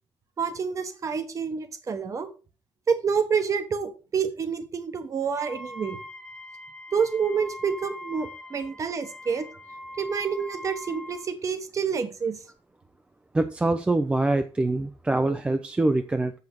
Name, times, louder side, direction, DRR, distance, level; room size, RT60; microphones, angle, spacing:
voice 1, 0.4-2.3 2.9-6.0 6.9-9.5 10.0-12.4, right 6 dB, 30° right, 10 dB, 0.9 m, -28 dB
Wind instrument woodwind instrument, 5.4-11.3, left 1 dB, 10° left, 0.8 m, -42 dB
voice 2, 13.3-16.3, right 2 dB, 10° right, 9 dB, 0.3 m, -24 dB
7.3 x 5.8 x 4.5 m, 0.33 s
cardioid pair, 180°, 10 cm